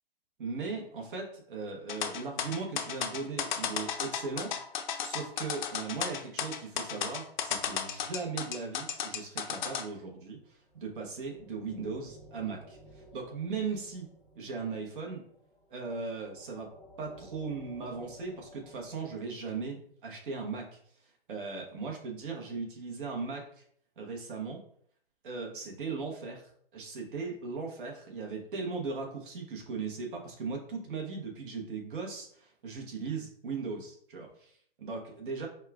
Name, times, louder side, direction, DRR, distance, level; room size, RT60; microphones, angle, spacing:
voice 1, 0.4-4.5 5.0-14.1 14.3-15.2 15.7-16.7 17.0-20.8 21.3-23.5 24.0-24.6 25.2-35.5, right 4 dB, 60° right, 1 dB, 1.1 m, -38 dB
sound 1, 1.9-9.8, left 8 dB, 50° left, 0.5 m, -33 dB
sound 2, 10.3-19.2, equal, 5° right, 1.0 m, -55 dB
5.4 x 2.3 x 2.4 m, 0.63 s
hypercardioid pair, 130°, 30 cm